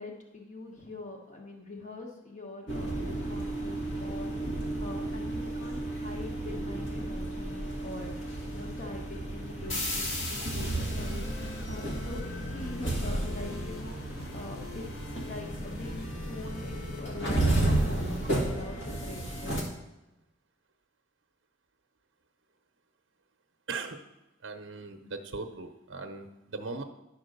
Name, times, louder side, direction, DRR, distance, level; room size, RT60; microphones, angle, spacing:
voice 1, 0.0-19.7, left 2 dB, 35° left, 1 dB, 1.3 m, -44 dB
sound 1, 2.7-19.6, right 1 dB, 65° left, 1.7 m, -32 dB
sound 2, 10.6-18.6, left 2 dB, 85° left, 1.0 m, -44 dB
voice 2, 23.7-24.0 24.4-26.8, right 3 dB, 65° right, 5 dB, 0.7 m, -39 dB
10.5 x 4.5 x 6.6 m, 0.96 s
head